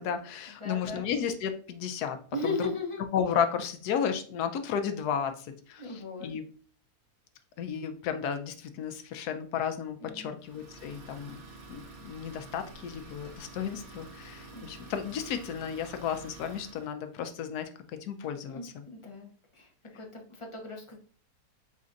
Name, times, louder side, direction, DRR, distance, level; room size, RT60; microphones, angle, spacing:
voice 1, 0.0-2.2 2.4-2.7 3.1-5.8 6.2-6.4 7.6-11.4 11.7-17.7 18.0-18.7, left 7 dB, 80° left, 8 dB, 1.2 m, -33 dB
voice 2, 0.6-1.0 2.3-3.0 5.8-6.3 10.0-10.4 14.5-14.7 18.5-21.0, left 3 dB, 25° left, 0 dB, 0.7 m, -37 dB
Idling, 10.4-16.9, right 3 dB, 45° right, 1.0 m, -49 dB
4.2 x 4.0 x 2.4 m, 0.43 s
omnidirectional pair, 1.7 m